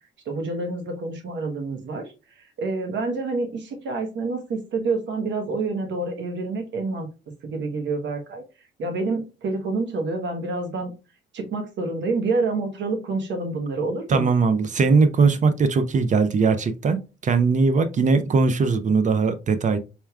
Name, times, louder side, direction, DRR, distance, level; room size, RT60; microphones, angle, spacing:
voice 1, 0.3-2.1 2.6-7.1 7.5-8.4 8.8-10.9 11.3-14.3, right 3 dB, 65° right, 1.1 m, -27 dB
voice 2, 14.1-17.0 17.2-19.8, right 4 dB, 40° right, 0.5 m, -20 dB
4.2 x 3.5 x 2.3 m
cardioid pair, 90°, 20 cm